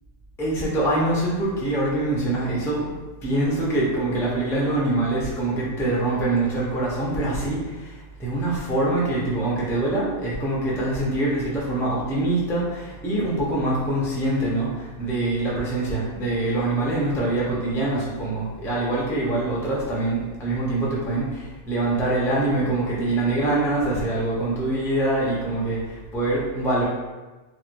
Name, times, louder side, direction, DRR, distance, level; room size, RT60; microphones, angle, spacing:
voice 1, 0.4-2.9 3.2-26.8, right 2 dB, 5° left, -6 dB, 0.4 m, -24 dB
2.9 x 2.9 x 2.5 m, 1.2 s
omnidirectional pair, 1.3 m